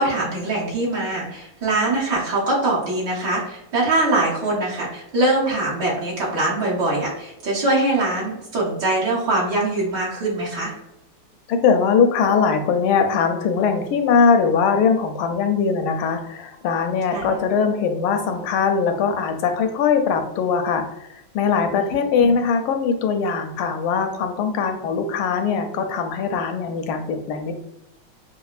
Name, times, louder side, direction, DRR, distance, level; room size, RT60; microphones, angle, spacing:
voice 1, 0.0-10.7 17.1-17.4 21.7-21.9 22.2-22.3, right 2 dB, 60° right, -6 dB, 1.6 m, -23 dB
voice 2, 11.5-27.5, left 5 dB, 80° left, 6 dB, 1.4 m, -21 dB
5.4 x 2.1 x 2.4 m, 0.85 s
omnidirectional pair, 2.3 m